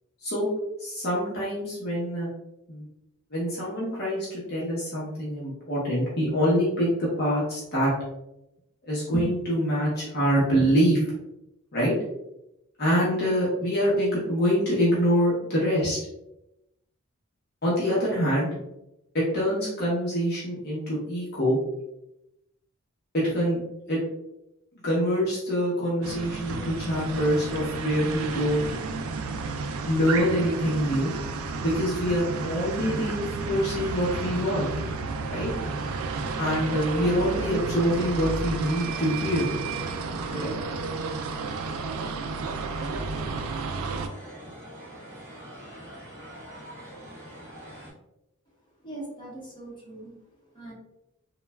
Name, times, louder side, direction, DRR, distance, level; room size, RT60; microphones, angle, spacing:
voice 1, 0.8-2.3 2.7-2.9 3.3-7.9 8.8-11.0 11.7-11.9 12.8-16.0 17.6-18.5 19.1-21.6 23.1-23.6 23.9-24.0 24.8-28.6 29.9-31.1 31.6-34.7 35.3-35.5 36.4-39.5 40.3-40.5, equal, 50° left, -7 dB, 0.8 m, -25 dB
sound 1, 26.0-44.1, right 4 dB, 80° right, 0.3 m, -32 dB
sound 2, 38.6-47.9, equal, 15° right, 1.1 m, -45 dB
voice 2, 48.8-50.2 50.5-50.7, right 2 dB, 25° left, -7 dB, 1.0 m, -41 dB
3.1 x 2.2 x 2.2 m, 0.88 s
head